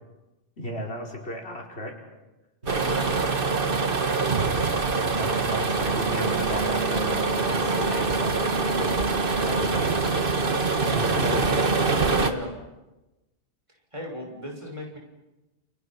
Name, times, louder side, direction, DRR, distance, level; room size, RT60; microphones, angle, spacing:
voice 1, 0.6-2.0 5.1-8.4 8.7-9.9 10.8-11.8, equal, 70° left, 1 dB, 5.4 m, -35 dB
voice 2, 2.6-3.2 3.6-4.3 12.2-12.6 13.9-15.0, equal, 30° right, 0 dB, 6.2 m, -36 dB
sound 1, 2.6-9.4, right 9 dB, 80° right, 2.6 m, -40 dB
sound 2, 2.7-12.3, right 3 dB, 55° right, 1.7 m, -24 dB
30.0 x 29.5 x 6.0 m, 1.0 s
omnidirectional pair, 1.1 m